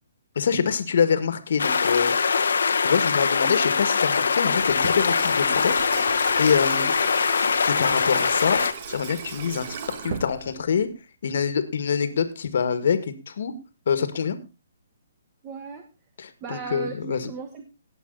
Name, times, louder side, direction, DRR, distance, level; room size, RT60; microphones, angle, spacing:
voice 1, 0.4-2.1 2.8-6.9 7.7-10.9 11.2-13.5 13.9-14.4 16.2-17.3, left 6 dB, 65° left, 11 dB, 1.9 m, -25 dB
sound 1, 1.6-8.7, left 5 dB, 80° left, 1.4 m, -22 dB
Water tap faucet / Sink (filling or washing), 4.6-10.9, right 6 dB, 45° right, 2.0 m, -36 dB
voice 2, 15.4-15.9 16.4-17.6, right 6 dB, 25° right, 7 dB, 1.4 m, -36 dB
18.0 x 8.0 x 4.0 m, 0.29 s
hypercardioid pair, 160°, 0 cm